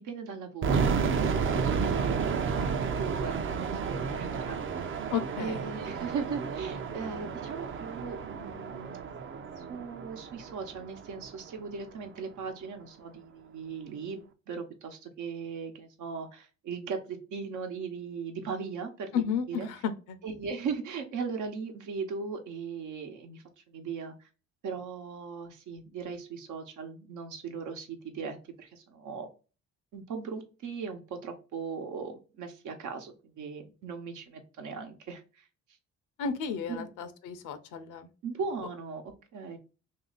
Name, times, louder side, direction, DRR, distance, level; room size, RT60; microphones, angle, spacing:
voice 1, 0.0-5.1 5.4-9.0 9.6-19.7 20.2-24.3 24.6-29.3 29.9-35.5 36.7-36.9 38.2-39.6, right 5 dB, 80° right, 5 dB, 1.0 m, -38 dB
sound 1, 0.6-11.5, right 5 dB, 45° right, 0.5 m, -31 dB
voice 2, 5.1-5.6 19.1-20.2 36.2-38.1, left 7 dB, 90° left, 10 dB, 0.7 m, -33 dB
3.2 x 2.7 x 3.9 m, 0.34 s
cardioid pair, 90°, 30 cm